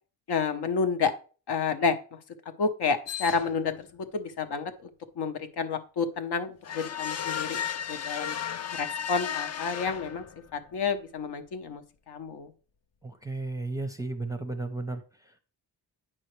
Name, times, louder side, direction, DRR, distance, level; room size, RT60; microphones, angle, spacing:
voice 1, 0.3-1.1 1.5-2.2 2.6-4.9 5.2-7.6 7.9-8.4 8.7-10.2 10.5-12.5, left 5 dB, 65° left, 8 dB, 0.9 m, -30 dB
sound 1, 3.1-3.8 6.6-10.5, left 8 dB, 40° left, 0.4 m, -34 dB
voice 2, 13.0-15.4, right 2 dB, 10° right, 7 dB, 0.6 m, -34 dB
8.7 x 5.5 x 3.1 m, 0.37 s
wide cardioid pair, 130°, 42 cm